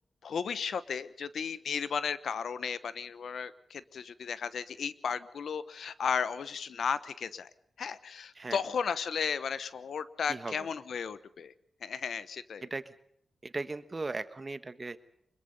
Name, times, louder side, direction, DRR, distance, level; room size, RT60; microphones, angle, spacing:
voice 1, 0.2-7.5 7.8-11.5 11.8-12.6, left 6 dB, 80° left, 15 dB, 1.1 m, -34 dB
voice 2, 10.3-10.7 12.6-12.9 13.4-15.0, right 3 dB, 30° right, 12 dB, 1.3 m, -38 dB
25.0 x 22.0 x 5.5 m, 0.73 s
wide cardioid pair, 125°, 0 cm